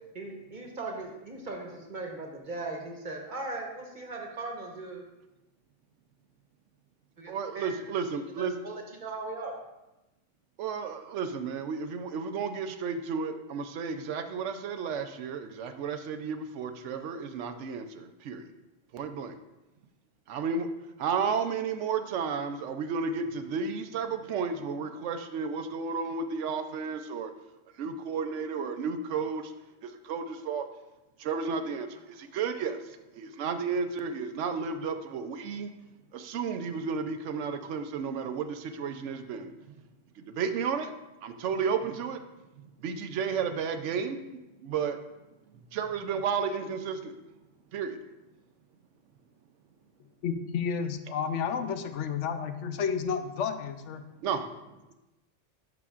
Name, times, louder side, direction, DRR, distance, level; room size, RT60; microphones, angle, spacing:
voice 1, 0.2-5.0 7.2-7.7 8.4-9.5, right 2 dB, 45° right, 1 dB, 1.1 m, -38 dB
voice 2, 7.3-8.6 10.6-18.5 18.9-19.4 20.3-20.7 21.0-27.3 27.7-29.5 29.8-30.7 31.2-35.7 36.1-39.8 40.2-40.9 41.2-42.2 42.6-44.2 44.6-45.0 45.5-47.2 47.7-48.0 54.2-54.9, right 5 dB, 80° right, 8 dB, 0.9 m, -33 dB
voice 3, 50.2-54.0, left 6 dB, 80° left, 8 dB, 0.9 m, -31 dB
11.0 x 5.8 x 2.4 m, 0.99 s
omnidirectional pair, 1.2 m